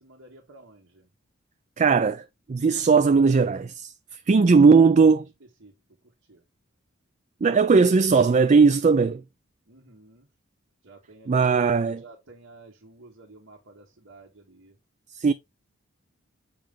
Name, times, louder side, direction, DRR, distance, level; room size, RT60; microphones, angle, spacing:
voice 1, 0.0-1.1 4.4-4.8 5.6-5.8 6.3-6.4 9.7-10.3 10.8-14.8, right 2 dB, 65° right, 1.6 m, -50 dB
voice 2, 1.8-2.2 2.5-3.9 4.3-5.2 7.4-9.2 11.3-12.0 15.1-15.3, right 5 dB, 35° right, 0.4 m, -18 dB
6.9 x 5.3 x 3.6 m
head